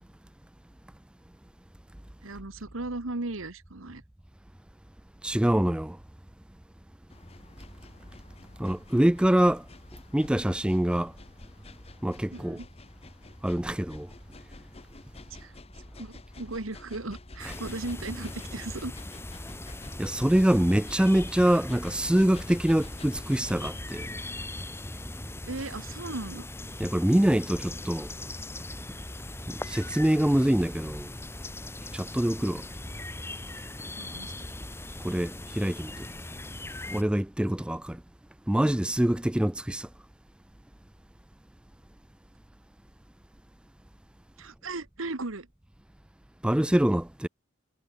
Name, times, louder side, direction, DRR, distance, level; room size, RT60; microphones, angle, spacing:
voice 1, 2.2-4.0 12.3-12.7 15.3-15.5 16.0-18.9 25.4-26.5 32.4-32.6 34.0-34.5 44.4-45.5, right 2 dB, 85° right, 1.6 m, -37 dB
voice 2, 5.2-6.0 8.6-9.6 10.1-11.1 12.0-12.6 13.4-14.1 20.0-24.2 26.8-28.1 29.5-31.1 31.9-32.6 35.0-36.1 36.9-38.0 38.5-39.9 46.4-47.3, right 1 dB, 5° right, 0.3 m, -25 dB
sound 1, 7.1-23.8, left 2 dB, 30° left, 1.2 m, -48 dB
sound 2, 17.4-37.0, left 1 dB, 10° left, 2.6 m, -40 dB
head